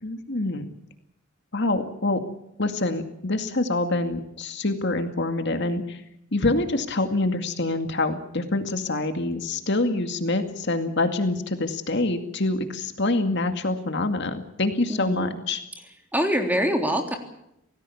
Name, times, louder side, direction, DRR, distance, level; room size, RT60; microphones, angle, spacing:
voice 1, 0.0-0.6 1.5-2.2 2.6-6.0 6.3-15.6, left 2 dB, 55° left, 7 dB, 2.2 m, -26 dB
voice 2, 14.9-15.4 16.1-17.2, equal, 10° right, 4 dB, 3.4 m, -24 dB
27.5 x 18.5 x 7.2 m, 0.80 s
head